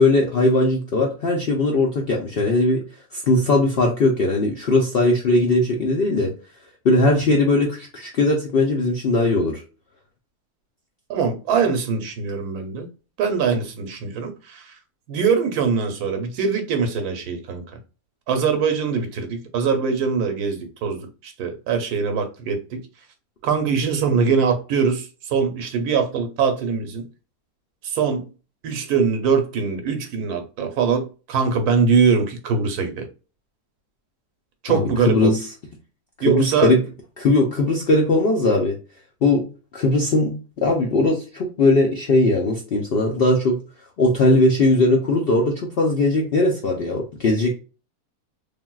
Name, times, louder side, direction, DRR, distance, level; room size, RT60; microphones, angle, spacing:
voice 1, 0.0-2.8 3.1-6.3 6.8-9.6 34.7-35.5 36.2-36.8 37.2-38.7 39.2-39.5 39.7-43.6 44.0-47.5, left 2 dB, 70° left, 0.5 m, -19 dB
voice 2, 11.1-12.9 13.2-14.6 15.1-17.6 18.3-22.8 23.4-25.0 25.3-27.0 27.9-28.3 28.6-33.1 34.6-35.3 36.2-36.7, right 5 dB, 80° right, 1.2 m, -22 dB
3.4 x 2.6 x 2.3 m
omnidirectional pair, 1.7 m